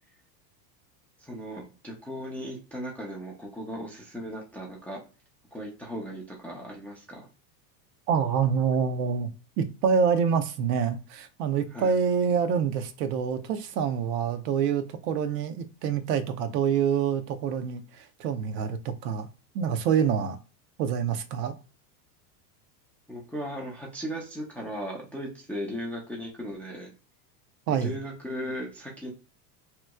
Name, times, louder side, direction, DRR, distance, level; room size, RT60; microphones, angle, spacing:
voice 1, 1.2-5.0 5.5-7.3 11.7-11.9 23.1-26.9 27.7-29.1, equal, 5° left, 0.3 m, -37 dB
voice 2, 8.1-9.3 9.6-19.3 19.5-20.4 20.8-21.5 27.7-28.0, right 7 dB, 70° right, 0.7 m, -26 dB
3.0 x 2.1 x 3.5 m
supercardioid pair, 110°, 50 cm